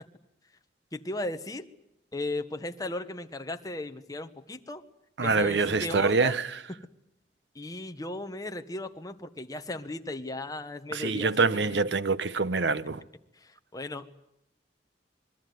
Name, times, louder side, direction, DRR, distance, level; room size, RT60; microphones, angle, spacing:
voice 1, 0.9-1.7 2.1-4.8 5.2-6.4 7.5-11.9 13.4-14.1, left 2 dB, 20° left, 1.3 m, -36 dB
voice 2, 5.2-6.5 10.9-13.0, right 4 dB, 80° right, 0.9 m, -25 dB
26.5 x 21.5 x 9.4 m
head